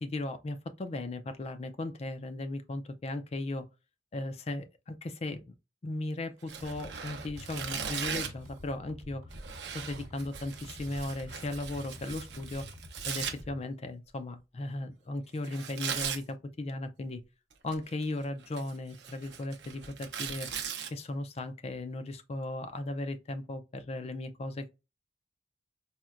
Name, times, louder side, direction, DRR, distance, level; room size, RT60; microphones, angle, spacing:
voice 1, 0.0-3.7 4.1-5.5 5.8-9.2 9.7-12.7 13.0-17.2 17.6-20.5 20.9-24.7, left 2 dB, 35° left, 0.4 m, -37 dB
Tearing, 6.4-8.5 9.3-13.3 15.4-16.2 17.5-18.0 18.4-20.9, right 7 dB, 75° right, 0.6 m, -39 dB
sound 1, 6.6-13.6, left 1 dB, 55° right, 1.3 m, -49 dB
4.2 x 2.1 x 2.4 m
head